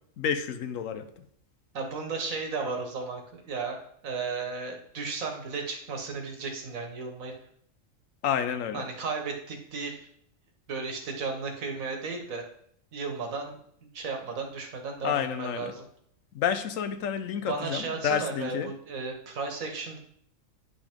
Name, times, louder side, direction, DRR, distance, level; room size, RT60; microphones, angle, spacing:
voice 1, 0.2-1.2 8.2-8.9 15.0-15.7 16.3-18.7, left 8 dB, 75° left, 10 dB, 1.1 m, -30 dB
voice 2, 1.7-3.8 4.0-7.3 8.7-10.1 10.7-12.4 12.9-15.8 17.5-20.0, right 4 dB, 85° right, 3 dB, 1.6 m, -34 dB
9.7 x 5.4 x 3.6 m, 0.67 s
omnidirectional pair, 1.4 m